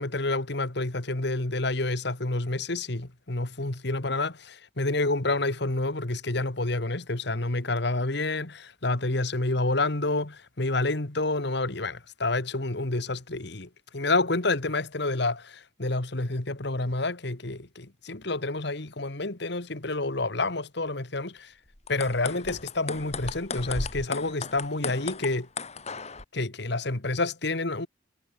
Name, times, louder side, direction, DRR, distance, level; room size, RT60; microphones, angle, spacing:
voice 1, 0.0-21.5 21.9-25.5 26.3-27.9, left 2 dB, 60° left, 2.0 m, -29 dB
sound 1, 21.7-26.2, left 4 dB, 35° left, 3.8 m, -36 dB
head